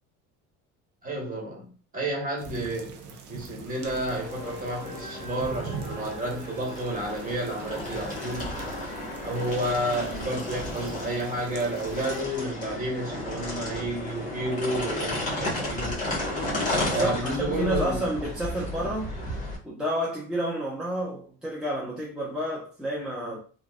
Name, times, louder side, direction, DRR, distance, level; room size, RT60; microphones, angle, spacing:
voice 1, 1.0-8.5 9.2-16.0 16.9-18.1, right 1 dB, 25° right, 1.4 m, -31 dB
sound 1, 2.4-12.2, right 5 dB, 75° right, 0.7 m, -44 dB
sound 2, 3.8-19.6, left 1 dB, 25° left, 1.6 m, -33 dB
voice 2, 16.8-19.1 19.6-23.4, equal, ahead, 0.8 m, -30 dB
3.7 x 2.3 x 2.4 m
cardioid pair, 120°, 31 cm